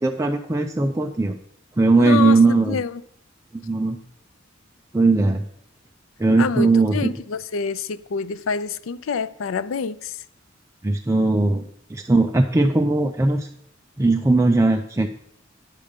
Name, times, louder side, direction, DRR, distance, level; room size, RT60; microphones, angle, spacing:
voice 1, 0.0-1.4 1.8-2.8 3.5-4.0 4.9-5.4 6.2-7.1 10.8-13.5 14.0-15.1, right 3 dB, 15° right, 0.4 m, -19 dB
voice 2, 2.0-3.0 6.4-10.2, left 5 dB, 80° left, 0.4 m, -27 dB
9.8 x 6.7 x 5.2 m
head